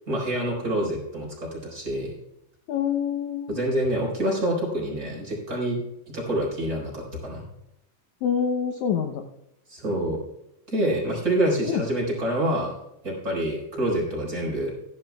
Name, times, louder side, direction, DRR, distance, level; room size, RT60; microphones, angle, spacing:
voice 1, 0.1-2.1 3.5-5.8 6.1-7.4 9.7-10.2 10.7-12.7 13.0-14.7, right 1 dB, 25° right, -3 dB, 4.7 m, -27 dB
voice 2, 2.7-3.8 8.2-9.2 11.7-11.8, left 7 dB, 70° left, 4 dB, 1.9 m, -26 dB
16.0 x 12.0 x 2.3 m, 0.85 s
omnidirectional pair, 4.0 m